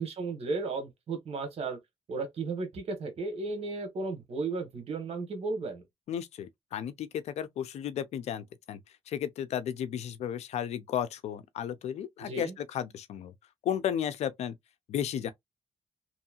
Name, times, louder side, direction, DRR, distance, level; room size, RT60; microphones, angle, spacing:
voice 1, 0.0-1.8 2.1-5.8 12.2-12.5, right 3 dB, 70° right, 1.3 m, -34 dB
voice 2, 6.1-8.8 9.1-13.3 13.6-14.5 14.9-15.3, left 9 dB, 85° left, 0.5 m, -34 dB
3.0 x 2.7 x 2.4 m
cardioid pair, 75°, 11 cm